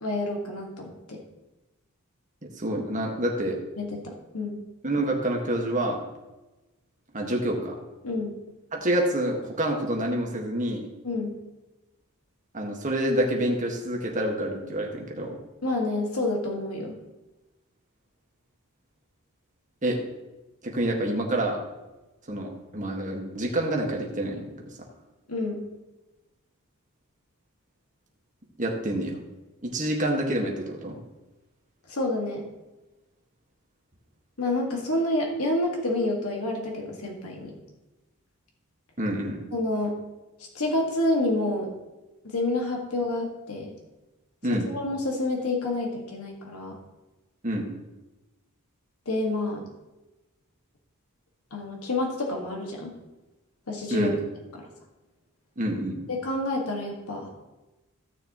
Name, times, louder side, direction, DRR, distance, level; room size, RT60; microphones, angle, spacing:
voice 1, 0.0-1.2 3.8-4.6 8.0-8.3 11.0-11.3 15.6-16.9 25.3-25.7 31.9-32.5 34.4-37.5 39.5-40.0 40.6-41.7 42.2-43.7 44.7-46.8 49.1-49.7 51.5-52.9 53.7-54.1 54.6-54.7 56.1-57.3, left 2 dB, 85° left, 0 dB, 1.8 m, -28 dB
voice 2, 2.5-3.6 4.8-6.0 7.1-7.8 8.7-10.9 12.5-15.4 19.8-20.0 20.6-21.6 22.3-24.7 28.6-29.1 29.6-31.0 39.0-39.4 44.4-44.7 47.4-47.7 53.9-54.2 55.6-56.0, right 1 dB, 35° right, 0 dB, 1.6 m, -27 dB
15.5 x 6.8 x 3.0 m, 1.1 s
head